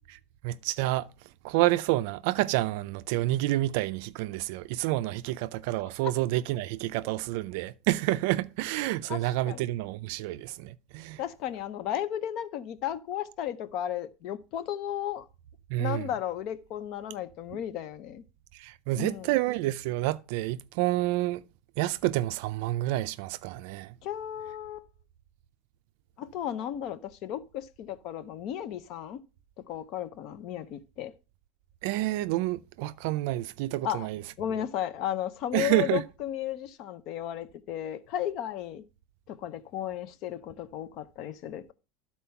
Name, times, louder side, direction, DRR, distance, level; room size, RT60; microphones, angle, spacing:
voice 1, 0.4-1.1 1.4-11.2 15.7-16.1 18.6-21.4 21.8-23.9 31.8-34.2 35.5-36.0, right 16 dB, 55° right, 0.4 m, -29 dB
voice 2, 9.1-9.6 11.2-15.2 15.8-18.2 19.0-19.4 24.0-24.8 26.2-29.2 29.7-31.1 33.8-34.1 34.4-38.8 39.3-41.7, left 11 dB, 35° left, 0.6 m, -34 dB
12.0 x 4.3 x 5.7 m
supercardioid pair, 175°, 0 cm